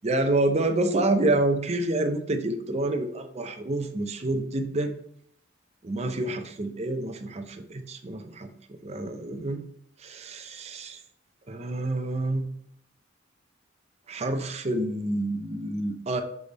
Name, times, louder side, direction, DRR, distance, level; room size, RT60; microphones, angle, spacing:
voice 1, 0.0-4.9 5.8-8.5 8.8-9.6 10.0-11.0 11.5-12.5 14.1-16.2, right 2 dB, 35° right, 6 dB, 0.6 m, -28 dB
7.0 x 3.4 x 4.0 m, 0.70 s
head